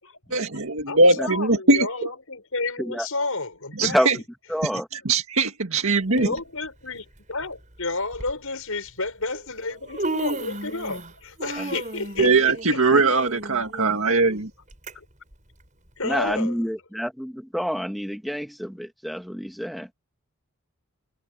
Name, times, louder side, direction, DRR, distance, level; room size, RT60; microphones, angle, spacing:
voice 1, 0.3-1.9 3.8-4.2 4.9-6.3 12.2-14.5, right 3 dB, 75° right, 1.9 m, -20 dB
voice 2, 0.9-4.0 4.9-5.0 6.2-13.0 14.9-15.1 16.0-16.6, left 3 dB, 75° left, 5.8 m, -31 dB
voice 3, 3.8-4.2 4.5-4.9 6.1-6.4 11.6-11.7 12.9-13.0 16.0-19.9, equal, ahead, 2.2 m, -28 dB
Human voice, 6.2-6.4 7.4-7.5 8.1-8.3 9.3-9.4 9.7-11.1 11.4-14.9 15.3-15.4 16.3-16.4, right 2 dB, 35° right, 6.9 m, -33 dB
head